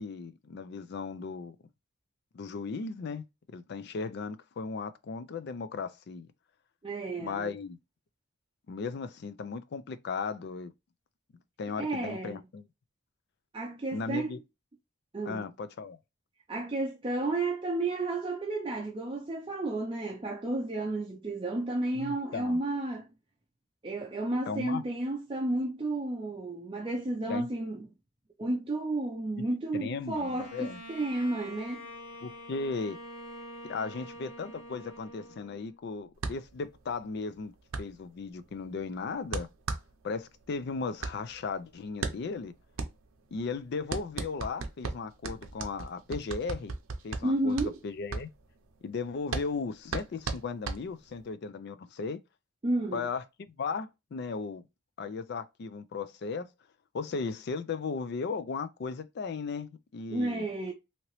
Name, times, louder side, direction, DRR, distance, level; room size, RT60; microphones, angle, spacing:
voice 1, 0.0-1.6 2.3-3.3 3.5-6.3 7.2-7.8 8.7-10.7 11.6-12.6 13.9-14.4 15.3-16.0 21.9-22.6 24.5-24.8 27.3-27.5 29.7-30.8 32.2-33.0 33.7-37.5 37.8-39.5 40.0-42.5 43.3-46.7 47.0-47.6 47.8-48.3 48.8-52.2 52.9-54.6 55.0-56.5 56.9-60.4, left 4 dB, 50° left, 0.3 m, -36 dB
voice 2, 6.8-7.5 11.8-12.4 13.5-14.3 15.1-15.5 16.5-23.1 23.8-27.9 28.4-31.9 47.2-47.8 52.6-53.0 60.1-60.7, right 2 dB, 25° right, 0.4 m, -32 dB
Bowed string instrument, 30.1-35.9, equal, 85° left, 1.2 m, -46 dB
sound 1, 36.2-51.3, right 4 dB, 75° right, 0.6 m, -38 dB
2.9 x 2.8 x 3.0 m
head